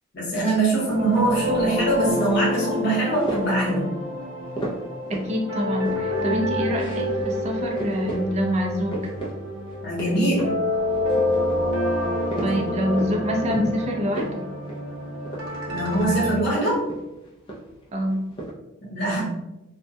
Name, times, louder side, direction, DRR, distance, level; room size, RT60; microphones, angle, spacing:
voice 1, 0.1-3.9 9.8-10.5 12.4-12.6 13.5-13.6 15.7-16.8 18.8-19.2, right 2 dB, 50° left, -4 dB, 0.9 m, -23 dB
sound 1, 0.9-16.3, left 1 dB, 85° right, 0.6 m, -28 dB
sound 2, 3.1-3.7 4.6-5.4 5.6-6.3 6.7-7.1 7.4-7.5 7.8-8.3 8.6-9.3 9.7-10.6 10.9-11.6 12.0-13.2 13.5-13.8 14.1-14.4 14.7-14.8 15.2-16.0 16.7-17.8 18.1-18.5, right 2 dB, 25° left, 0.4 m, -34 dB
voice 2, 5.1-9.0 12.4-14.5 17.9-18.4, equal, 30° right, 1 dB, 0.4 m, -26 dB
2.2 x 2.2 x 2.6 m, 0.95 s
head